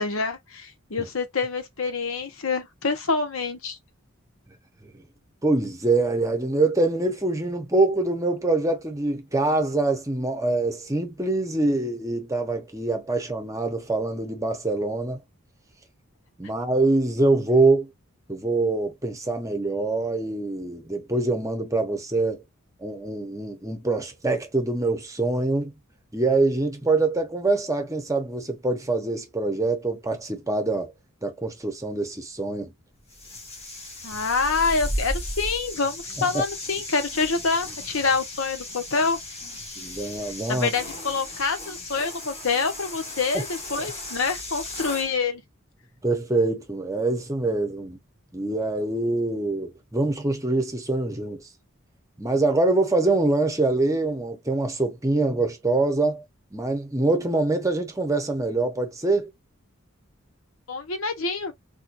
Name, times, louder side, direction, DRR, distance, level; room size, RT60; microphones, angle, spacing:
voice 1, 0.0-3.8 34.0-39.2 40.5-45.4 60.7-61.5, left 4 dB, 75° left, 1.0 m, -26 dB
voice 2, 5.4-15.2 16.4-17.9 18.3-22.4 22.8-25.7 26.1-30.9 31.2-32.7 36.3-36.4 39.8-40.7 43.3-43.4 46.0-48.0 48.3-51.5 52.2-56.2 56.5-59.3, right 2 dB, 15° right, 0.8 m, -24 dB
sound 1, 33.1-45.1, left 1 dB, 30° left, 1.7 m, -36 dB
4.3 x 2.3 x 2.5 m
head